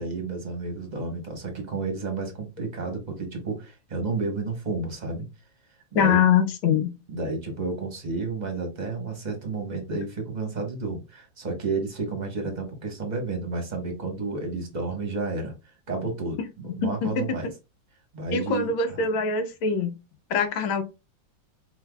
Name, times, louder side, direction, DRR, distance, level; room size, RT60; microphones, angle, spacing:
voice 1, 0.0-5.3 5.9-6.2 7.1-15.5 15.9-17.5 18.1-19.0, right 3 dB, 25° right, 1.1 m, -31 dB
voice 2, 5.9-6.9 16.8-17.2 18.3-19.9 20.3-20.8, left 6 dB, 75° left, 1.7 m, -23 dB
4.6 x 4.4 x 2.3 m
omnidirectional pair, 2.3 m